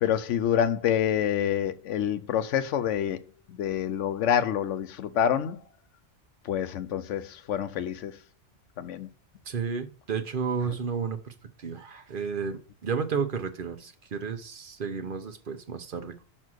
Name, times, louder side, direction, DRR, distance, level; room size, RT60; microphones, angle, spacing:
voice 1, 0.0-3.2 3.5-5.6 6.4-8.1 8.8-9.1, left 9 dB, 90° left, 1.0 m, -27 dB
voice 2, 9.5-16.2, right 6 dB, 50° right, 0.9 m, -32 dB
6.0 x 4.4 x 6.2 m
omnidirectional pair, 1.2 m